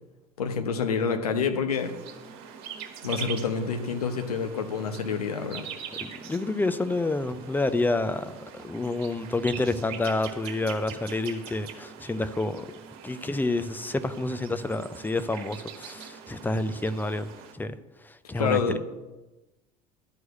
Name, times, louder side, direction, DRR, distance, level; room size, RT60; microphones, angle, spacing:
voice 1, 0.4-2.0 3.0-5.7 18.3-18.8, left 6 dB, 75° left, 1.0 m, -27 dB
sound 1, 1.8-17.5, right 8 dB, 55° right, 1.5 m, -43 dB
voice 2, 6.0-12.7 13.0-17.3 17.5-17.7 18.0-18.8, left 2 dB, 10° left, 0.6 m, -29 dB
11.5 x 4.7 x 7.9 m
figure-of-eight pair, 70°, 20 cm